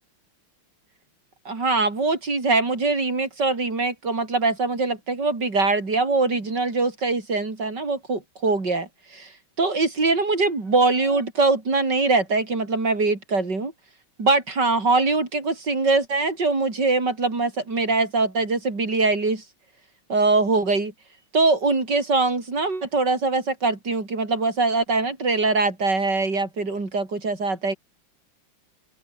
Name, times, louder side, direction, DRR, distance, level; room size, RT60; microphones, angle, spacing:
voice 1, 1.5-9.3 9.6-13.7 14.2-19.4 20.1-20.9 21.3-27.8, right 3 dB, 50° right, 5.5 m, -22 dB
open air
omnidirectional pair, 2.4 m